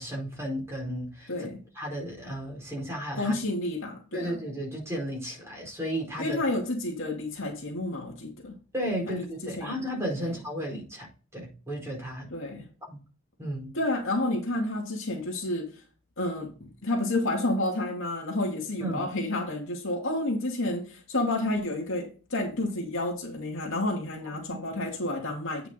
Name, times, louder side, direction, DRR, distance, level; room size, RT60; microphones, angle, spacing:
voice 1, 0.0-1.5 1.7-3.4 4.1-6.4 8.7-11.1 11.3-12.3 12.9-13.0 13.4-13.7 18.8-19.1 24.3-24.4, equal, 10° right, 4.7 m, -34 dB
voice 2, 3.1-4.3 6.2-8.5 9.4-9.7 10.2-10.3 12.3-12.7 13.7-15.7 16.2-25.7, left 2 dB, 60° left, 2.6 m, -30 dB
9.1 x 5.7 x 3.9 m
head